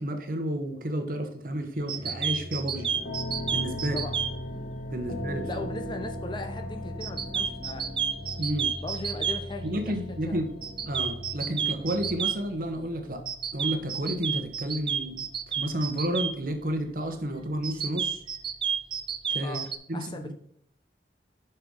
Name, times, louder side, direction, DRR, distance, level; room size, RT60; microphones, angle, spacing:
voice 1, 0.0-2.9 3.5-4.0 4.9-5.5 8.4-8.7 9.6-10.5 10.9-13.2 13.5-15.3 15.6-18.2 19.3-19.6 19.9-20.3, right 1 dB, 50° right, 6 dB, 1.1 m, -31 dB
sound 1, 1.9-4.3 7.0-9.4 10.6-12.3 13.3-16.3 17.6-19.8, right 7 dB, 30° right, 0.5 m, -30 dB
sound 2, 2.0-12.2, equal, 5° right, 1.0 m, -42 dB
sound 3, 2.7-19.2, left 1 dB, 60° left, 1.3 m, -41 dB
voice 2, 5.4-7.9 8.8-9.9 10.3-10.4 19.4-20.3, left 2 dB, 25° left, 6 dB, 0.7 m, -38 dB
6.6 x 5.7 x 3.7 m, 0.69 s
head